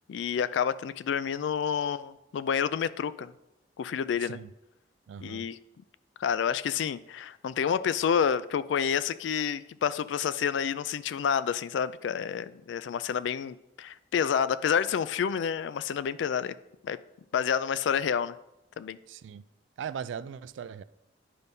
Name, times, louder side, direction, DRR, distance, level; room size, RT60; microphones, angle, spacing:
voice 1, 0.1-3.3 3.8-4.4 5.2-5.6 6.2-16.6 16.8-17.0 17.3-18.3 18.8-19.0, left 7 dB, 80° left, 0.3 m, -29 dB
voice 2, 4.2-4.5 5.1-5.5 19.1-19.4 19.8-20.8, right 7 dB, 85° right, 0.3 m, -39 dB
10.0 x 5.3 x 2.7 m
head